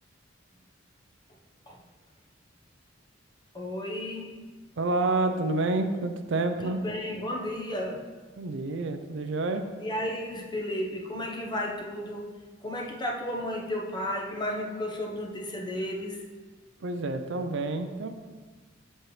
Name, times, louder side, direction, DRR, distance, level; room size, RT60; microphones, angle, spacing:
voice 1, 3.5-4.4 6.6-8.0 9.8-12.3 12.6-16.2, left 1 dB, 20° left, -1 dB, 0.9 m, -33 dB
voice 2, 4.8-6.8 8.4-9.7 16.8-18.1, right 2 dB, 65° right, 7 dB, 0.5 m, -28 dB
7.5 x 6.6 x 3.2 m, 1.4 s
head